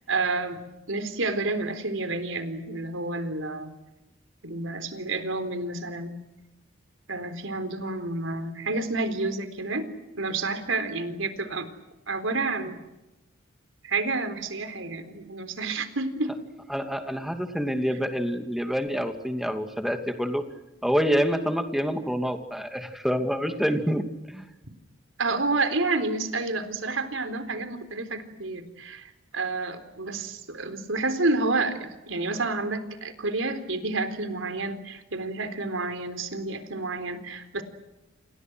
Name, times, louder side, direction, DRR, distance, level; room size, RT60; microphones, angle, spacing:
voice 1, 0.1-0.6 0.9-3.7 4.4-6.1 7.1-9.9 10.1-11.7 12.1-12.8 13.8-16.3 25.2-29.1 29.3-37.6, right 3 dB, 90° right, 9 dB, 3.9 m, -29 dB
voice 2, 16.7-20.4 20.8-24.0 24.3-24.4, equal, ahead, 6 dB, 2.6 m, -27 dB
29.5 x 28.0 x 6.4 m, 1.0 s
head